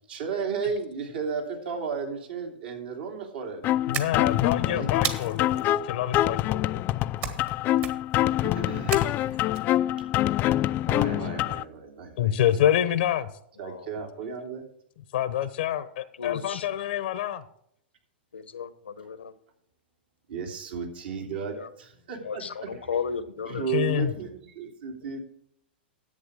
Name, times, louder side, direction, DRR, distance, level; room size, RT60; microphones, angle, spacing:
voice 1, 0.1-3.6 4.6-4.9 8.4-9.3 10.9-12.3 13.6-14.7 20.3-22.8 23.4-25.2, right 6 dB, 65° right, 3 dB, 2.8 m, -34 dB
sound 1, 3.6-11.6, left 14 dB, 35° left, 0.3 m, -25 dB
voice 2, 3.9-6.9 12.2-13.3 15.1-17.4 23.5-24.1, left 11 dB, 65° left, 14 dB, 0.8 m, -27 dB
sound 2, 3.9-4.5 5.0-5.6 7.2-7.5 7.8-8.2 8.9-9.6, right 7 dB, 35° right, 1.4 m, -33 dB
voice 3, 16.2-16.6 18.3-19.3 21.4-21.7 22.2-23.7, left 6 dB, 85° left, 13 dB, 1.0 m, -34 dB
11.0 x 8.2 x 4.8 m, 0.71 s
hypercardioid pair, 110°, 6 cm